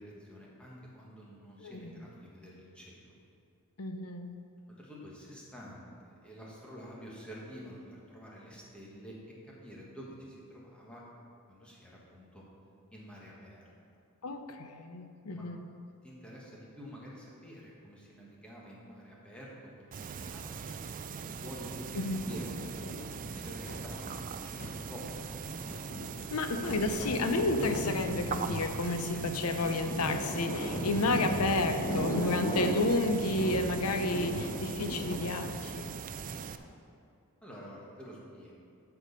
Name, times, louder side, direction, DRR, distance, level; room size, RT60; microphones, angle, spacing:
voice 1, 0.0-3.1 4.8-9.1 9.4-11.0 11.5-12.4 12.9-13.7 15.3-15.5 16.0-19.5 19.8-20.7 21.3-22.0 22.2-22.9 23.3-25.3 37.4-38.6, equal, 5° left, -5 dB, 1.6 m, -48 dB
voice 2, 1.6-2.0 3.8-4.4 14.2-15.7 21.9-22.3 26.3-35.9, left 2 dB, 80° left, 7 dB, 0.7 m, -31 dB
sound 1, 19.9-36.6, right 6 dB, 35° right, 0.4 m, -41 dB
sound 2, 22.1-24.3 24.8-35.7, equal, 55° left, 1.3 m, -37 dB
sound 3, 23.6-24.0 24.5-24.9 25.6-26.0 26.6-26.9 27.6-28.0 28.5-28.9 29.5-29.9, left 1 dB, 35° left, 1.0 m, -48 dB
12.5 x 4.7 x 5.3 m, 2.5 s
head